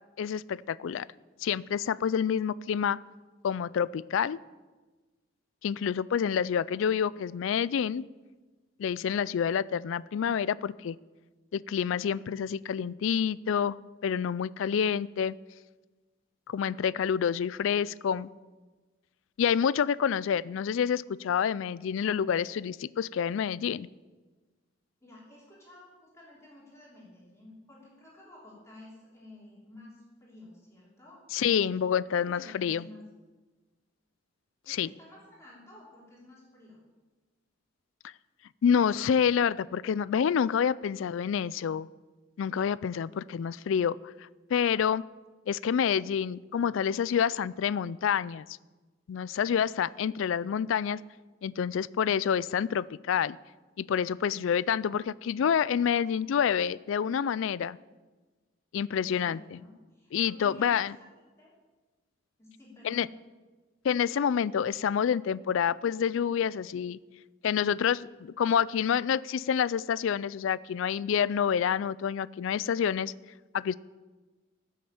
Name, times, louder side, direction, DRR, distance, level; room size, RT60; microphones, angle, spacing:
voice 1, 0.2-1.1 1.4-3.0 3.4-4.4 5.6-8.1 8.8-11.0 11.5-13.8 14.0-15.3 16.5-18.3 19.4-23.9 31.3-32.9 34.7-34.9 38.6-41.9 42.4-44.1 44.5-45.0 45.5-48.5 49.1-51.0 51.4-53.4 53.8-57.8 58.7-59.6 60.1-61.0 62.8-63.1 63.8-67.0 67.4-73.1 73.5-73.8, left 7 dB, 70° left, 20 dB, 0.3 m, -28 dB
voice 2, 25.0-31.8 32.2-33.0 34.6-36.8 58.9-60.9 61.4-61.6 62.4-63.1, left 2 dB, 15° left, -6 dB, 3.0 m, -51 dB
15.0 x 6.4 x 7.1 m, 1.3 s
head